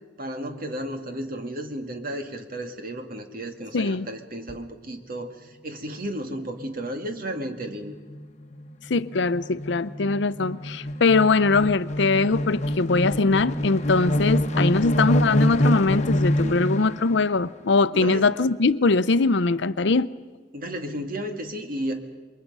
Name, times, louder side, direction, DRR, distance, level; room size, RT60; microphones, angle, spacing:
voice 1, 0.2-7.9 16.4-16.6 17.9-18.3 20.5-22.0, equal, 50° right, 2.1 m, -33 dB
voice 2, 3.7-4.1 8.9-20.1, left 3 dB, 70° left, 0.6 m, -22 dB
sound 1, 6.4-6.7 7.0-7.2 7.4-17.1, equal, 40° left, 1.2 m, -26 dB
28.0 x 23.0 x 5.5 m
head